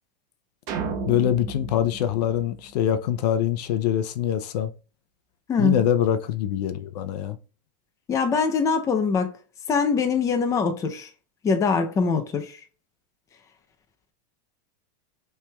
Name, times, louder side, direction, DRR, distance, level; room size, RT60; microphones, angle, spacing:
sound 1, 0.7-3.1, right 5 dB, 45° right, 0.9 m, -33 dB
voice 1, 1.1-4.7 5.6-7.4, left 10 dB, 70° left, 0.5 m, -24 dB
voice 2, 5.5-5.8 8.1-9.3 9.7-11.1 11.4-12.6, left 5 dB, 15° left, 0.5 m, -23 dB
5.8 x 3.3 x 2.2 m
supercardioid pair, 150°, 21 cm